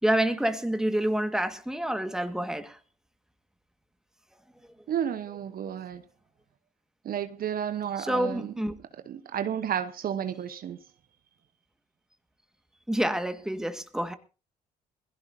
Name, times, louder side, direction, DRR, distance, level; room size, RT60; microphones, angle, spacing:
voice 1, 0.0-2.8 8.0-8.7 12.9-14.1, right 1 dB, 5° right, 1.7 m, -28 dB
voice 2, 4.9-6.0 7.0-8.5 9.1-10.8, right 9 dB, 50° right, 1.0 m, -32 dB
21.0 x 15.5 x 2.7 m
hypercardioid pair, 55°, 19 cm